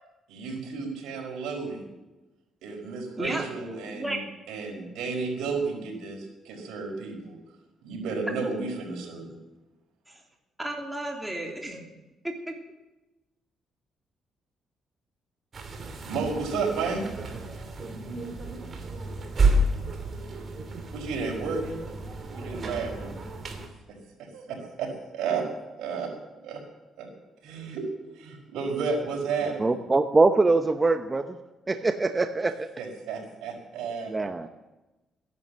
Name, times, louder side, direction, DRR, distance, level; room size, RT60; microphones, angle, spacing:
voice 1, 0.3-1.8 2.6-4.2 4.5-7.4 7.8-9.4 16.0-17.0 20.9-21.8 22.3-23.1 23.9-25.4 25.8-26.1 26.4-26.6 27.0-27.1 27.4-27.9 28.1-29.7 32.8-34.3, right 4 dB, 85° right, 0 dB, 4.8 m, -32 dB
voice 2, 10.6-11.8 12.2-12.5, right 1 dB, 5° right, 0 dB, 3.3 m, -32 dB
sound 1, 15.5-23.7, right 2 dB, 45° right, 2.8 m, -30 dB
voice 3, 29.6-31.4 31.7-32.7 34.1-34.5, right 3 dB, 25° right, 7 dB, 0.8 m, -23 dB
15.0 x 11.0 x 7.6 m, 1.1 s
cardioid pair, 90°, 0 cm